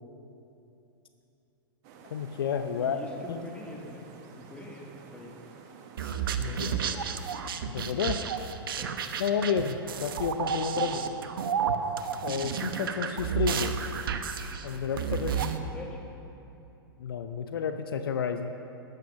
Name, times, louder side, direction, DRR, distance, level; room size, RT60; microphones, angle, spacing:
sound 1, 1.8-7.4, right 5 dB, 45° right, 1.2 m, -51 dB
voice 1, 2.1-3.0 3.3-3.4 6.0-6.6 7.7-8.2 9.2-11.0 12.2-13.7 14.6-15.3 17.0-18.5, left 7 dB, 65° left, 8 dB, 0.6 m, -31 dB
voice 2, 2.7-4.1 4.4-5.3 6.4-6.8 8.7-9.0 10.8-11.1 15.2-16.1, left 2 dB, 10° left, -1 dB, 1.9 m, -44 dB
sound 2, 6.0-15.6, right 7 dB, 65° right, 0.8 m, -31 dB
13.0 x 9.3 x 6.2 m, 2.9 s
figure-of-eight pair, 100°, 13 cm